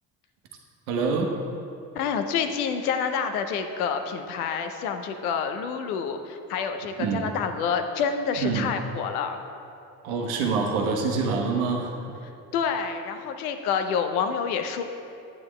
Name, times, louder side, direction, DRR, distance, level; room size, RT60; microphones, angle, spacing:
voice 1, 0.9-1.3 7.0-7.3 8.4-8.7 10.0-11.9, right 4 dB, 85° right, 1 dB, 1.0 m, -25 dB
voice 2, 1.9-9.4 12.5-14.8, left 6 dB, 90° left, 7 dB, 0.6 m, -28 dB
8.7 x 8.6 x 3.2 m, 2.6 s
hypercardioid pair, 55°, 43 cm